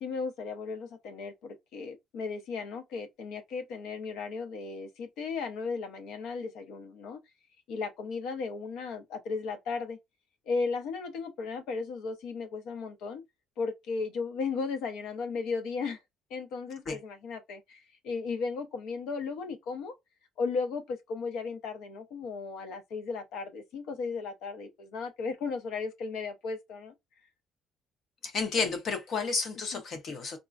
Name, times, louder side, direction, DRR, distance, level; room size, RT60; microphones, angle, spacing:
voice 1, 0.0-7.2 7.7-10.0 10.5-13.2 13.6-16.0 16.3-19.9 20.4-26.9 29.7-29.8, left 4 dB, 70° left, 0.7 m, -35 dB
voice 2, 28.2-30.4, left 4 dB, 40° left, 0.8 m, -31 dB
3.6 x 2.1 x 2.4 m
cardioid pair, 165°, 0 cm